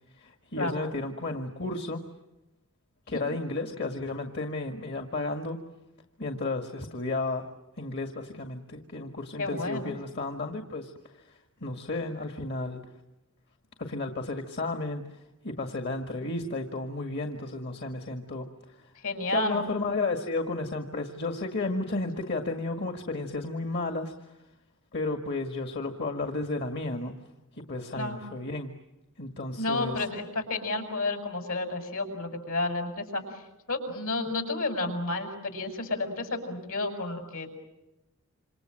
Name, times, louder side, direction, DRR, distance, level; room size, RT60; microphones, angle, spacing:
voice 1, 0.1-2.0 3.1-5.6 6.2-7.5 7.8-12.8 13.8-18.9 19.3-24.3 24.9-27.1 27.5-28.7 29.2-30.0, left 2 dB, 55° left, 6 dB, 2.0 m, -33 dB
voice 2, 9.4-9.9 19.0-19.6 27.9-28.2 29.6-33.4 33.7-37.5, left 2 dB, 75° left, 6 dB, 6.6 m, -31 dB
27.5 x 27.5 x 7.7 m, 0.98 s
head